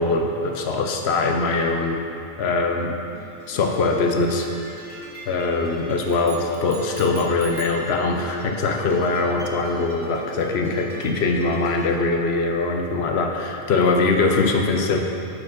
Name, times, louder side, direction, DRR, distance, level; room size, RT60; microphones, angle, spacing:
voice 1, 0.0-2.0 2.4-3.0 3.5-4.9 5.3-15.0, left 3 dB, 70° left, 3 dB, 0.8 m, -22 dB
sound 1, 3.1-12.0, right 1 dB, 15° left, 1.8 m, -44 dB
sound 2, 6.1-7.9, right 6 dB, 40° right, 0.6 m, -42 dB
6.6 x 4.5 x 5.9 m, 2.7 s
omnidirectional pair, 1.2 m